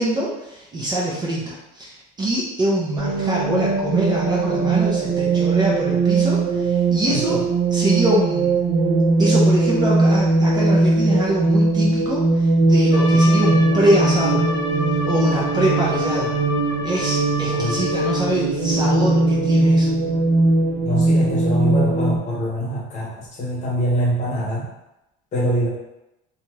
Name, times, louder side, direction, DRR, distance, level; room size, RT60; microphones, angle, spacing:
voice 1, 0.0-8.6 9.2-14.4 15.0-16.3 16.8-19.9, right 1 dB, 20° right, -5 dB, 0.5 m, -24 dB
sound 1, 3.0-22.2, right 2 dB, 70° right, 0.7 m, -19 dB
voice 2, 7.1-7.4 17.5-17.9 20.8-24.7 25.3-25.7, right 1 dB, 35° left, -4 dB, 0.9 m, -24 dB
Trumpet, 12.9-18.2, left 2 dB, 65° left, 0.6 m, -30 dB
2.7 x 2.3 x 3.1 m, 0.92 s
cardioid pair, 155°, 21 cm